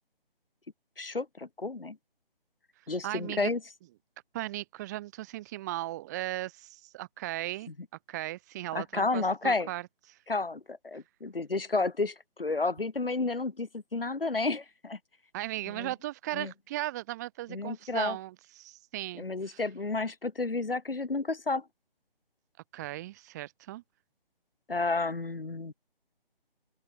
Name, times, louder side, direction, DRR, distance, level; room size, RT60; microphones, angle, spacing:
voice 1, 1.0-2.0 2.9-3.6 8.7-9.7 10.3-15.0 15.8-15.9 16.3-16.5 17.5-18.2 19.2-21.6 24.7-25.7, left 3 dB, 70° left, 2.2 m, -31 dB
voice 2, 3.0-3.5 4.3-7.7 8.1-10.2 15.3-19.6 22.7-23.8, right 16 dB, 20° right, 2.5 m, -37 dB
open air
figure-of-eight pair, 150°, 29 cm